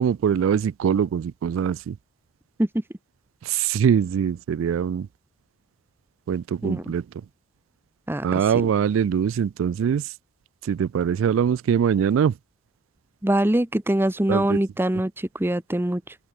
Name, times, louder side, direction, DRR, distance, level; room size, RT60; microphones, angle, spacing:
voice 1, 0.0-2.0 3.4-5.1 6.3-7.0 8.2-10.1 10.6-12.4 14.3-14.6, right 8 dB, 90° right, 0.3 m, -23 dB
voice 2, 13.2-16.1, right 1 dB, 10° right, 0.7 m, -23 dB
open air
head